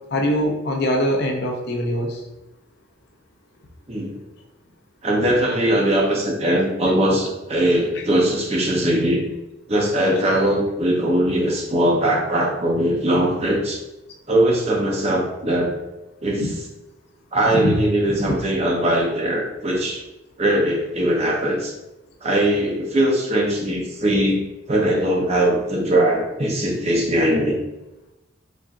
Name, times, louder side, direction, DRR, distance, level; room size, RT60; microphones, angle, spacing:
voice 1, 0.1-2.2 16.4-16.5 17.5-17.8 18.2-18.4, equal, 50° left, 1 dB, 0.5 m, -23 dB
voice 2, 5.0-9.2 9.7-13.8 14.3-15.7 16.2-16.6 17.3-20.0 20.4-21.7 22.2-24.4 24.7-27.6, right 1 dB, 30° right, -1 dB, 0.6 m, -20 dB
4.0 x 3.5 x 2.4 m, 0.97 s
head